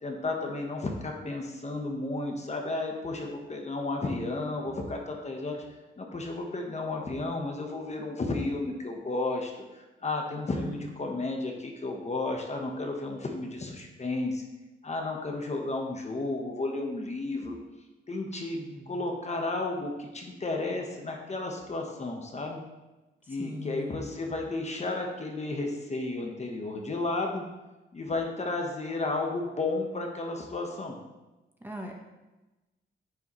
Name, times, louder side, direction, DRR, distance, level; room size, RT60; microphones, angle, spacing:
voice 1, 0.0-5.6 6.0-14.4 14.8-17.6 18.1-18.6 18.9-22.6 23.3-27.4 27.9-31.0, left 2 dB, 30° left, 2 dB, 1.1 m, -33 dB
voice 2, 10.5-10.9 18.5-19.1 23.2-24.1 31.6-32.0, equal, 10° right, 0 dB, 0.9 m, -41 dB
9.5 x 4.7 x 3.0 m, 1.1 s
cardioid pair, 95°, 21 cm